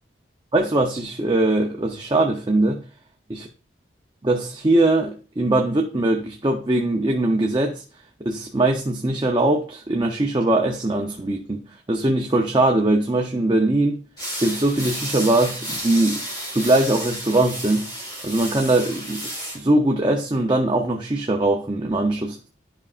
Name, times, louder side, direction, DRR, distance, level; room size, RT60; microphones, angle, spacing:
voice 1, 0.5-2.8 3.3-3.5 4.2-7.8 8.2-11.6 11.9-14.0 14.4-16.2 16.5-17.9 18.2-19.3 19.5-22.5, right 2 dB, 25° right, 0.6 m, -21 dB
sound 1, 14.2-19.6, equal, 20° left, 2.5 m, -32 dB
11.0 x 5.4 x 2.4 m
head